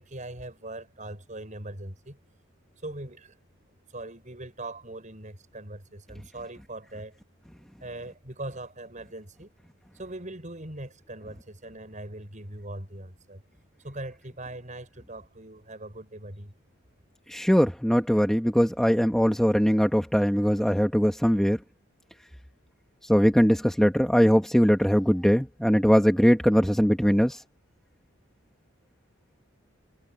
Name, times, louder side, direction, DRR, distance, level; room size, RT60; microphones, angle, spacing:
voice 1, 0.0-2.2 2.8-3.4 3.9-7.2 7.8-9.5 9.9-13.4 13.8-16.5, right 1 dB, 35° right, 5.9 m, -40 dB
voice 2, 17.3-21.6 23.1-27.4, equal, 5° left, 1.2 m, -21 dB
head